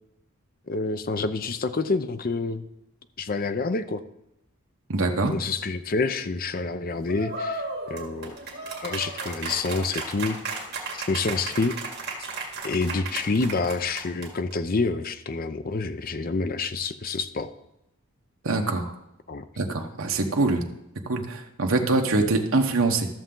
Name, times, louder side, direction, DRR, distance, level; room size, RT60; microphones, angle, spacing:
voice 1, 0.7-2.7 3.2-4.0 5.3-8.4 8.8-10.4 11.1-11.8 12.6-17.5 19.3-19.4, left 3 dB, 40° left, 11 dB, 0.5 m, -27 dB
voice 2, 4.9-5.3 18.4-18.9 19.6-20.6 21.0-23.1, right 3 dB, 65° right, 3 dB, 1.1 m, -24 dB
sound 1, 7.1-14.5, right 3 dB, 50° right, 2.2 m, -34 dB
13.5 x 6.9 x 3.8 m, 0.85 s
head